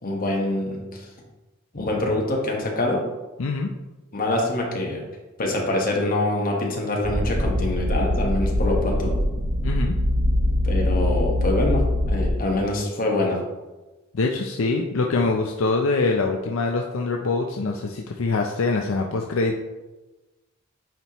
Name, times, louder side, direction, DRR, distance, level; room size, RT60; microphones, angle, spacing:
voice 1, 0.0-1.1 1.7-3.0 4.1-5.0 5.4-9.1 10.6-13.4, left 2 dB, 45° left, -1 dB, 1.4 m, -25 dB
voice 2, 3.4-3.7 9.6-10.0 14.1-19.6, left 3 dB, 70° left, 2 dB, 0.5 m, -24 dB
sound 1, 7.0-12.3, left 1 dB, 45° right, 0.8 m, -23 dB
9.0 x 4.3 x 3.0 m, 1.1 s
head